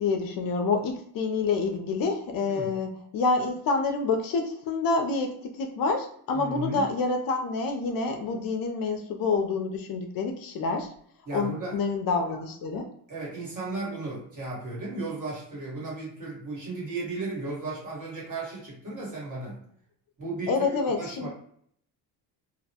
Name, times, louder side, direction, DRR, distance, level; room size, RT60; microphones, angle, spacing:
voice 1, 0.0-10.9 11.3-12.9 20.5-21.3, left 4 dB, 55° left, 4 dB, 0.5 m, -27 dB
voice 2, 6.3-6.9 11.2-11.8 13.1-19.6 20.2-21.3, right 3 dB, 45° right, -4 dB, 1.4 m, -35 dB
2.4 x 2.1 x 2.7 m, 0.65 s
cardioid pair, 100°, 43 cm